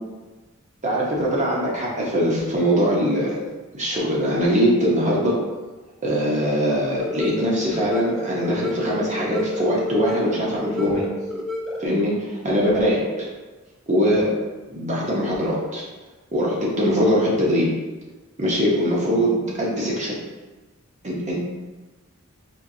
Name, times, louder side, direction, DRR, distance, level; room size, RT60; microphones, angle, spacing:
voice 1, 0.8-3.4 3.7-5.4 6.0-11.0 11.8-13.3 13.9-14.3 14.7-15.8 16.3-17.7 18.4-20.2 21.0-21.4, equal, 35° right, -4 dB, 0.9 m, -22 dB
sound 1, 7.0-12.0, left 1 dB, ahead, 0.6 m, -31 dB
4.5 x 3.2 x 2.7 m, 1.2 s
head